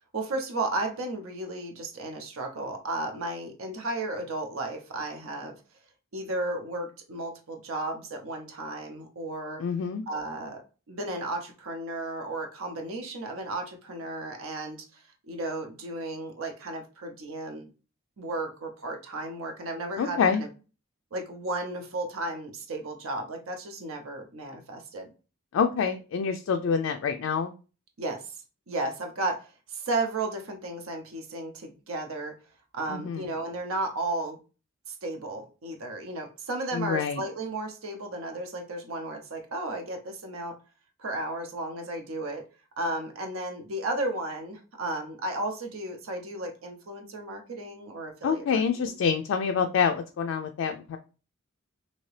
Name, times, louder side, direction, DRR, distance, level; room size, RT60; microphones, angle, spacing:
voice 1, 0.1-5.6 6.1-9.6 10.1-10.6 10.9-14.8 15.3-17.7 18.2-20.5 21.1-25.1 28.0-28.3 28.7-32.4 32.7-34.4 34.9-40.6 41.0-42.4 42.8-48.9, right 2 dB, 75° right, 3 dB, 0.6 m, -34 dB
voice 2, 9.6-10.0 20.0-20.4 25.5-27.5 32.9-33.3 36.7-37.2 48.2-51.0, left 6 dB, 65° left, 5 dB, 0.3 m, -26 dB
2.8 x 2.8 x 3.2 m, 0.34 s
head